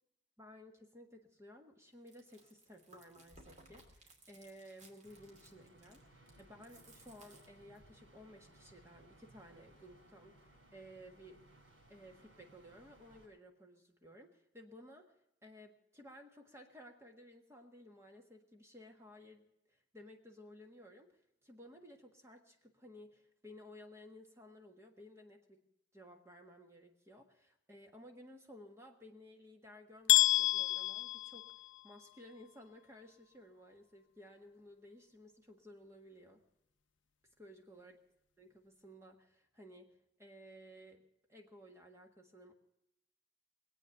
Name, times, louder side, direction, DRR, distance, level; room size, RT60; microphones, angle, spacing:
voice 1, 0.4-11.4 11.9-15.1 15.4-25.6 25.9-31.5 31.8-36.4 37.4-37.9 38.4-41.0 41.3-42.5, equal, 15° right, 3 dB, 1.6 m, -56 dB
Chewing mastication, 1.9-8.0, right 2 dB, 40° right, 2.5 m, -62 dB
sound 1, 5.0-13.3, right 1 dB, 85° right, 6.3 m, -63 dB
sound 2, 30.1-32.1, left 18 dB, 85° left, 0.6 m, -29 dB
22.0 x 8.6 x 6.6 m, 0.81 s
head